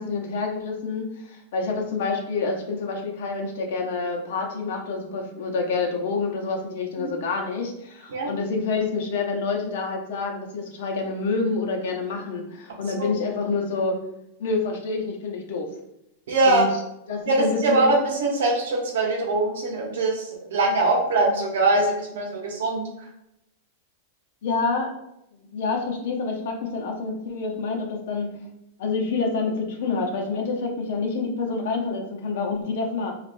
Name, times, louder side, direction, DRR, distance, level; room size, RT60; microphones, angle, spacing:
voice 1, 0.0-14.0 14.4-15.7 16.4-16.7 17.1-17.9 24.4-24.9 25.3-28.4 28.8-33.1, left 4 dB, 70° left, 2 dB, 0.7 m, -27 dB
voice 2, 16.3-16.7 17.3-22.9, right 2 dB, 80° right, 0 dB, 0.8 m, -22 dB
3.2 x 2.4 x 2.6 m, 0.83 s
supercardioid pair, 155°, 0 cm